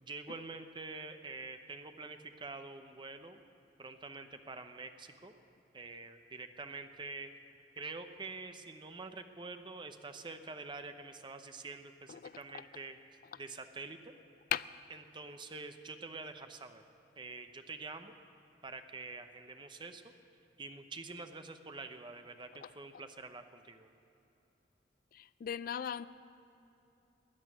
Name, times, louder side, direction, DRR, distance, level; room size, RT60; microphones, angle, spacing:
voice 1, 0.0-3.4 3.8-5.3 5.7-7.3 7.8-13.0 13.4-14.1 14.9-16.8 17.2-18.1 18.6-20.1 20.6-23.9, right 3 dB, 25° right, 8 dB, 0.8 m, -46 dB
voice 2, 25.1-26.1, left 9 dB, 50° left, 16 dB, 0.3 m, -37 dB
14.0 x 10.0 x 9.6 m, 2.9 s
head